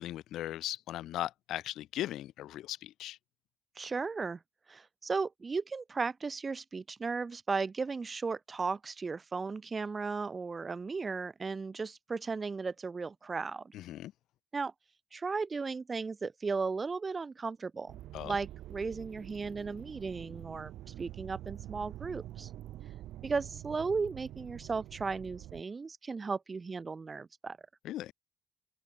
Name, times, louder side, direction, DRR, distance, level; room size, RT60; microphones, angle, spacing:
voice 1, 0.0-3.2 13.7-14.1 18.1-18.4 27.8-28.1, left 13 dB, 85° left, 0.5 m, -38 dB
voice 2, 3.8-4.4 4.7-13.7 14.5-14.7 15.1-22.5 23.2-27.6, right 4 dB, 30° right, 0.5 m, -36 dB
sound 1, 17.9-25.6, right 13 dB, 85° right, 1.5 m, -46 dB
open air
cardioid pair, 90°, 0 cm